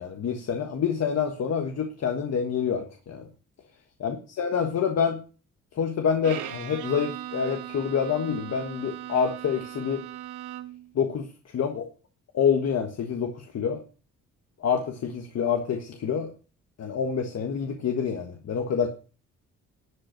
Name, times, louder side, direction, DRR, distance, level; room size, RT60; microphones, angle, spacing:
voice 1, 0.0-3.3 4.0-5.2 5.7-10.0 10.9-11.9 12.3-13.8 14.6-16.3 16.8-18.9, left 7 dB, 60° left, 4 dB, 1.5 m, -27 dB
Bowed string instrument, 6.2-10.9, right 12 dB, 85° right, 1.3 m, -38 dB
11.5 x 5.2 x 7.7 m, 0.37 s
cardioid pair, 90°, 30 cm